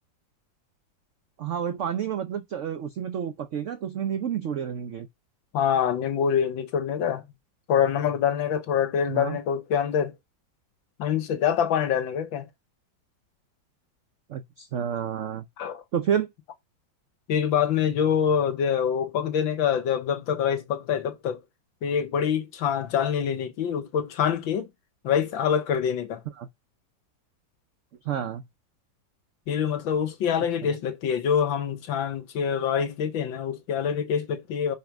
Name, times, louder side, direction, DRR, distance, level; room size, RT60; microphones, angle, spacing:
voice 1, 1.4-5.1 9.1-9.4 14.3-15.4 15.9-16.3 26.4-26.5 28.0-28.4 30.6-30.8, right 8 dB, 75° right, 0.6 m, -30 dB
voice 2, 5.5-7.2 7.7-10.2 11.0-12.5 15.6-15.8 17.3-21.4 21.8-24.7 25.0-26.2 29.5-34.8, left 8 dB, 85° left, 1.8 m, -25 dB
5.6 x 5.2 x 5.9 m
omnidirectional pair, 2.1 m